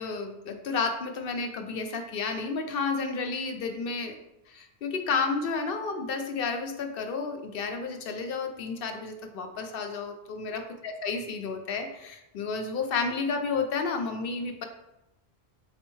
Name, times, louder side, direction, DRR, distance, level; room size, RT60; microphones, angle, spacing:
voice 1, 0.0-4.2 4.5-14.6, left 4 dB, 65° left, 5 dB, 0.7 m, -31 dB
4.2 x 4.1 x 3.1 m, 0.89 s
omnidirectional pair, 1.1 m